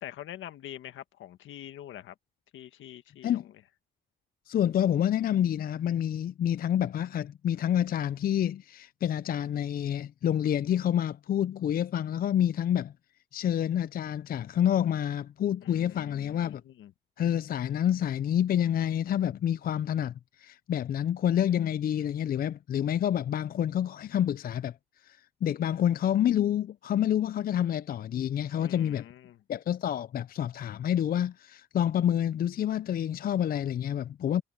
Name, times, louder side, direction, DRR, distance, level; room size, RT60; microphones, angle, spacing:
voice 1, 0.0-2.1 2.5-3.4 15.6-16.9 28.6-29.4, left 12 dB, 75° left, 1.6 m, -45 dB
voice 2, 4.5-12.9 13.3-16.6 17.2-24.7 25.0-29.0 29.5-34.4, left 10 dB, 50° left, 0.4 m, -28 dB
cardioid pair, 90°, 20 cm